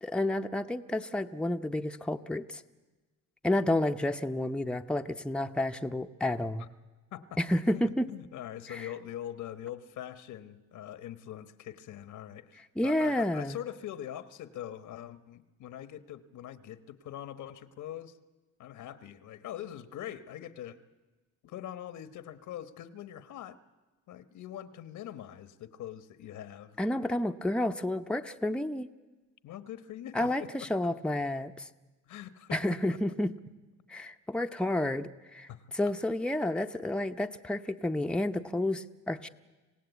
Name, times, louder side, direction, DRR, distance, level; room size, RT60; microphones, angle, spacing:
voice 1, 0.0-2.6 3.4-6.7 7.4-8.1 8.7-8.9 12.8-13.6 26.8-28.9 30.1-31.7 32.5-33.3 33.9-35.5 35.7-39.3, left 1 dB, 5° left, 5 dB, 0.8 m, -30 dB
voice 2, 7.7-18.2 18.6-20.8 21.4-23.6 24.1-26.8 29.4-30.5 32.1-32.6 32.9-33.0 35.5-35.7, left 11 dB, 80° left, 12 dB, 1.2 m, -43 dB
26.5 x 17.0 x 8.2 m, 1.2 s
cardioid pair, 90°, 30 cm